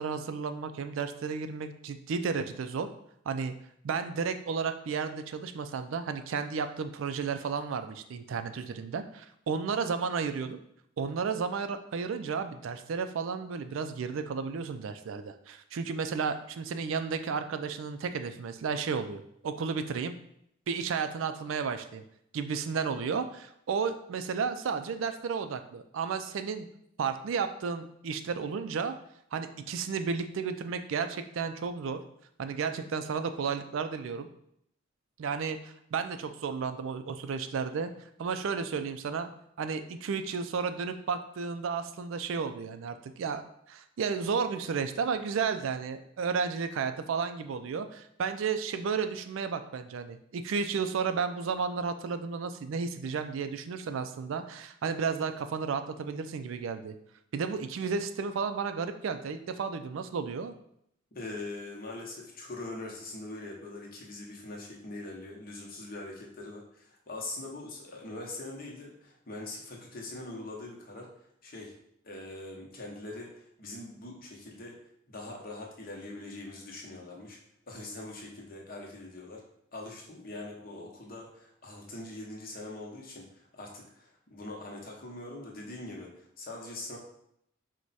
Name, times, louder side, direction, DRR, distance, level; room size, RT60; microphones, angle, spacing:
voice 1, 0.0-2.9 3.3-3.5 3.8-10.6 11.0-20.1 20.7-22.0 22.3-26.7 27.0-28.9 29.3-32.0 32.4-34.3 35.2-37.9 38.2-39.3 39.6-43.4 43.7-57.0 57.3-60.5, right 5 dB, 80° right, 9 dB, 0.4 m, -33 dB
voice 2, 61.1-71.1 71.4-71.7 72.0-74.8 75.1-77.4 77.7-79.4 79.7-87.0, left 2 dB, 45° left, -1 dB, 0.8 m, -42 dB
4.6 x 2.2 x 4.0 m, 0.72 s
head